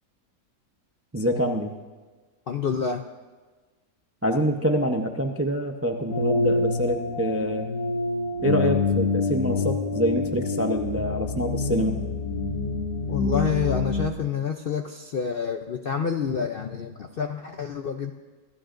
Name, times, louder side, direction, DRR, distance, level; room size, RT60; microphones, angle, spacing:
voice 1, 1.1-1.7 4.2-7.7 8.4-12.0, equal, 20° right, 4 dB, 0.4 m, -26 dB
voice 2, 2.5-3.1 13.1-18.1, left 6 dB, 60° left, 5 dB, 0.6 m, -28 dB
sound 1, 6.1-14.1, left 3 dB, 80° left, 2.7 m, -26 dB
26.0 x 15.0 x 2.6 m, 1.3 s
omnidirectional pair, 1.6 m